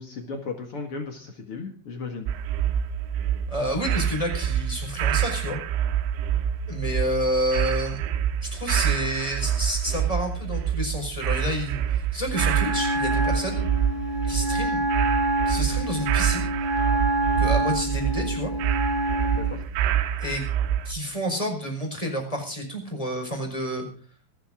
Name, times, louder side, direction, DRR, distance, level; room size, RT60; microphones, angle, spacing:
voice 1, 0.0-2.3 19.3-19.6, left 4 dB, 65° left, 3 dB, 1.4 m, -35 dB
sound 1, 2.3-20.9, right 9 dB, 85° right, 3.5 m, -27 dB
voice 2, 3.5-5.6 6.7-8.0 8.5-13.7 14.3-14.8 15.4-16.5 17.4-18.5 20.2-20.4 20.8-23.8, equal, 5° left, 3 dB, 4.4 m, -29 dB
Wind instrument woodwind instrument, 12.3-19.5, right 1 dB, 40° right, 6.4 m, -27 dB
26.5 x 11.0 x 3.7 m, 0.39 s
omnidirectional pair, 5.6 m